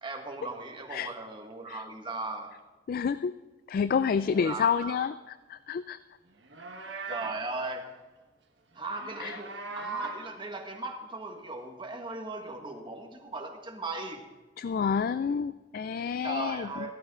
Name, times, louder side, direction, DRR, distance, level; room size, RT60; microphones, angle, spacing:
voice 1, 0.0-2.5 4.3-5.0 7.1-7.8 8.7-14.2 16.2-16.9, right 2 dB, 25° right, 3 dB, 1.6 m, -38 dB
voice 2, 2.9-3.3 3.7-6.0 9.2-9.4 14.6-16.7, left 6 dB, 50° left, 14 dB, 0.3 m, -29 dB
Livestock farm animals working animals, 6.3-7.5 8.8-10.3, right 4 dB, 70° right, 1.3 m, -40 dB
15.0 x 13.5 x 3.7 m, 1.2 s
head